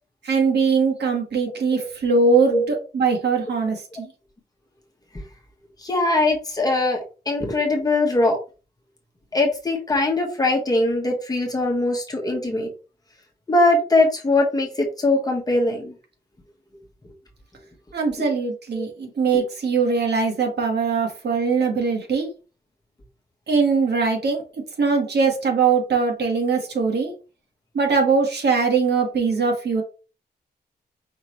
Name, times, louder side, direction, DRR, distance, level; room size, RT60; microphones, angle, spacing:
voice 1, 0.2-4.1 17.9-22.3 23.5-27.1 27.7-29.8, right 4 dB, 80° right, 2 dB, 1.4 m, -21 dB
voice 2, 5.8-7.0 7.2-8.4 9.3-12.7 13.5-15.9 18.7-18.9 19.3-19.4, left 2 dB, 20° left, 0 dB, 1.2 m, -21 dB
5.1 x 3.1 x 3.0 m, 0.33 s
wide cardioid pair, 175°, 17 cm